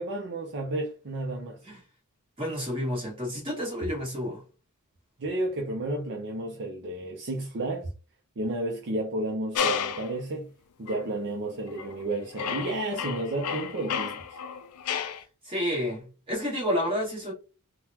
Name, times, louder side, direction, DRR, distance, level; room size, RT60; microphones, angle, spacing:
voice 1, 0.0-1.6 5.2-7.9 8.4-10.5 10.8-14.3, right 1 dB, 50° right, 0.6 m, -32 dB
voice 2, 2.4-4.4 15.4-17.3, equal, 25° right, 1.7 m, -30 dB
sound 1, 9.5-10.2 10.9-11.0 11.7-12.0 12.4-15.2, left 7 dB, 70° left, 0.4 m, -32 dB
3.8 x 2.2 x 2.8 m
head